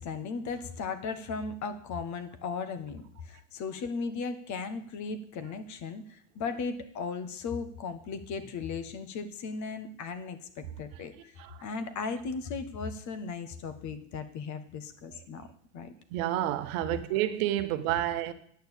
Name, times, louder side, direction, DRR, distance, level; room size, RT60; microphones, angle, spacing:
voice 1, 0.0-11.3 11.6-15.5 15.7-15.9, left 4 dB, 40° left, 1.5 m, -36 dB
voice 2, 16.1-18.3, right 13 dB, 65° right, 1.2 m, -29 dB
9.4 x 7.0 x 8.3 m
supercardioid pair, 110°, 43 cm